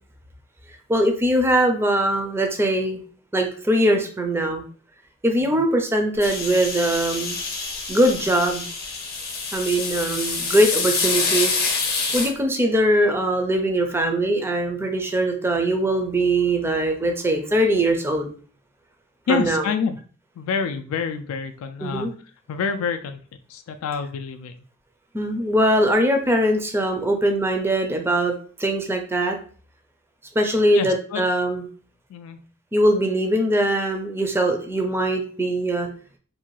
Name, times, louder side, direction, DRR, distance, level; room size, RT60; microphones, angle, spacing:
voice 1, 0.9-3.0 3.3-4.6 5.2-7.4 7.9-8.6 9.5-11.7 12.1-18.3 19.3-19.7 21.8-22.1 25.1-28.3 28.6-29.4 30.4-31.6 32.7-35.9, right 1 dB, 10° right, 4 dB, 0.4 m, -21 dB
sound 1, 6.2-12.3, left 4 dB, 45° left, 0.6 m, -26 dB
voice 2, 19.3-20.0 20.4-22.1 22.5-23.2 23.5-24.6 30.7-31.2 32.1-32.4, left 6 dB, 80° left, 10 dB, 0.3 m, -27 dB
2.7 x 2.2 x 3.0 m, 0.42 s
head